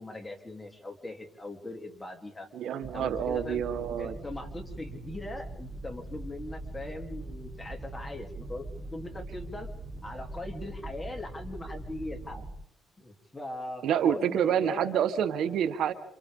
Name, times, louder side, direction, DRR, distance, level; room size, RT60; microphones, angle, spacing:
voice 1, 0.0-2.5 2.8-3.6 4.0-9.7 10.0-12.4 13.0-15.0, left 2 dB, 15° left, 3 dB, 3.2 m, -40 dB
voice 2, 2.5-4.1 13.8-15.9, right 9 dB, 75° right, 10 dB, 1.3 m, -28 dB
sound 1, 2.8-12.5, right 2 dB, 25° right, 3.8 m, -42 dB
29.0 x 27.0 x 3.7 m, 0.76 s
cardioid pair, 90°, 0 cm